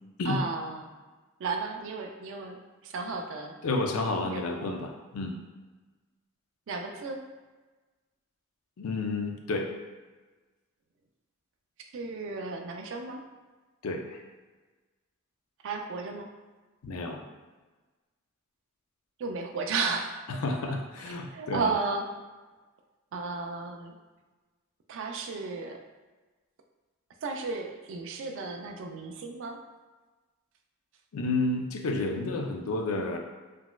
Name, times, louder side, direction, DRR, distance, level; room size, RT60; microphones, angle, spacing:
voice 1, 0.3-0.9 1.4-2.6 2.8-3.6 4.3-4.8 6.7-7.2 11.9-13.2 15.6-16.3 19.2-20.2 21.3-22.0 23.1-23.9 24.9-25.8 27.2-29.6, right 4 dB, 65° right, 3 dB, 0.4 m, -34 dB
voice 2, 3.6-5.3 8.8-9.7 13.8-14.2 16.8-17.2 20.3-21.7 31.1-33.2, left 2 dB, 85° left, 3 dB, 0.4 m, -30 dB
3.9 x 2.3 x 2.2 m, 1.3 s
head